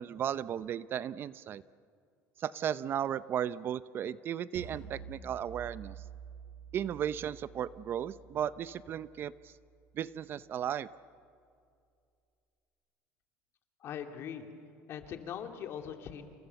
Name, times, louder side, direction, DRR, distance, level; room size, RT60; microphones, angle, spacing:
voice 1, 0.0-1.6 2.4-5.9 6.7-9.5 9.9-10.9, right 9 dB, 45° right, 16 dB, 0.6 m, -35 dB
sound 1, 4.5-9.6, right 6 dB, 80° right, 6.9 m, -49 dB
voice 2, 13.8-14.5 14.9-16.3, left 8 dB, 50° left, 5 dB, 2.8 m, -41 dB
29.0 x 28.5 x 7.1 m, 2.4 s
cardioid pair, 125°, 5 cm